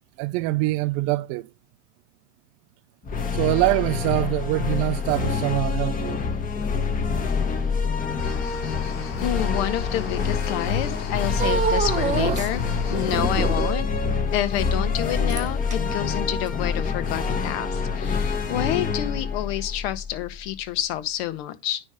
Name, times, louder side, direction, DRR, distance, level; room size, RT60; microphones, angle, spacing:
voice 1, 0.2-1.5 3.3-6.2, right 19 dB, 45° right, 0.5 m, -24 dB
sound 1, 3.0-20.5, left 5 dB, 25° left, 1.6 m, -26 dB
sound 2, 8.2-13.7, left 6 dB, 40° left, 3.6 m, -35 dB
voice 2, 9.2-12.6 12.9-13.9 14.3-21.8, left 12 dB, 60° left, 1.3 m, -29 dB
sound 3, 11.4-12.5 12.9-13.8 15.3-15.7 16.5-16.6, right 6 dB, 20° right, 1.3 m, -26 dB
9.6 x 3.3 x 4.9 m
hypercardioid pair, 105°, 34 cm